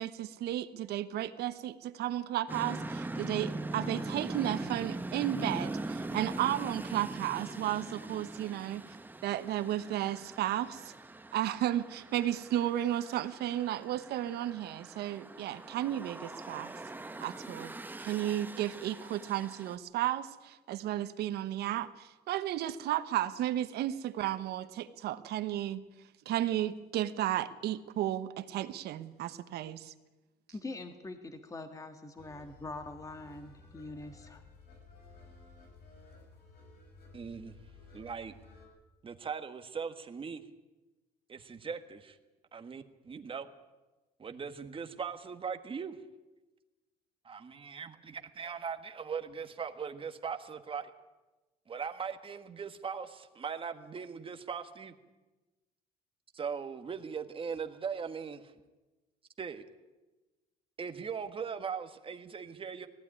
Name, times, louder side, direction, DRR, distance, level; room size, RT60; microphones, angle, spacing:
voice 1, 0.0-8.8 9.2-10.9 11.3-16.7 17.2-17.7 18.0-25.8 26.2-29.9, right 12 dB, 75° right, 12 dB, 1.1 m, -33 dB
sound 1, 2.5-19.8, right 2 dB, 10° right, 0.9 m, -41 dB
voice 2, 30.5-34.4, left 2 dB, 20° left, 7 dB, 1.6 m, -44 dB
sound 2, 32.2-38.7, left 3 dB, 70° left, 5.9 m, -55 dB
voice 3, 37.1-37.6 37.9-38.3 39.0-40.4 41.3-42.2 42.5-43.5 44.2-46.0 47.2-50.9 51.7-54.9 56.3-58.5 59.4-59.6 60.8-62.9, right 6 dB, 30° right, 7 dB, 1.6 m, -39 dB
18.5 x 15.0 x 9.8 m, 1.1 s
cardioid pair, 110°, 17 cm